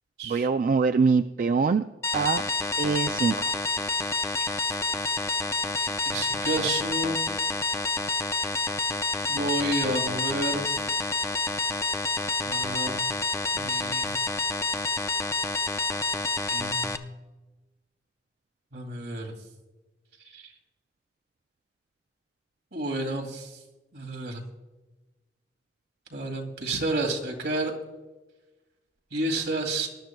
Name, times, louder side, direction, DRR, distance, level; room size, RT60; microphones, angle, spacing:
voice 1, 0.2-1.9 2.1-2.4 2.8-3.6, right 5 dB, 50° right, 8 dB, 0.3 m, -24 dB
sound 1, 2.0-17.0, left 3 dB, 15° left, 0.5 m, -28 dB
voice 2, 5.8-7.2 9.3-10.9 12.4-13.0 13.5-14.1 16.5-17.2 18.7-19.3 20.3-20.5 22.7-23.5 23.9-24.4 26.1-27.7 29.1-29.9, right 2 dB, 75° right, 1 dB, 2.3 m, -30 dB
21.0 x 11.5 x 2.2 m, 1.1 s
head